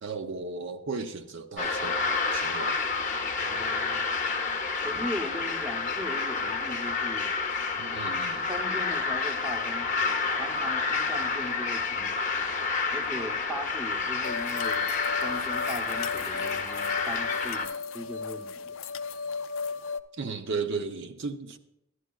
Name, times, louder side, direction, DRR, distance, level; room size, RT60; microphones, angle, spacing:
voice 1, 0.0-2.0 2.3-2.8 7.8-8.5 20.2-21.6, right 4 dB, 65° right, 0.5 m, -35 dB
sound 1, 1.6-17.7, left 4 dB, 40° left, 0.6 m, -29 dB
voice 2, 3.4-4.1 4.8-7.3 8.5-12.2 12.9-14.9 15.2-18.8, equal, 10° right, 0.7 m, -39 dB
sound 2, 14.2-20.0, left 5 dB, 80° left, 0.4 m, -35 dB
12.5 x 11.0 x 2.3 m
head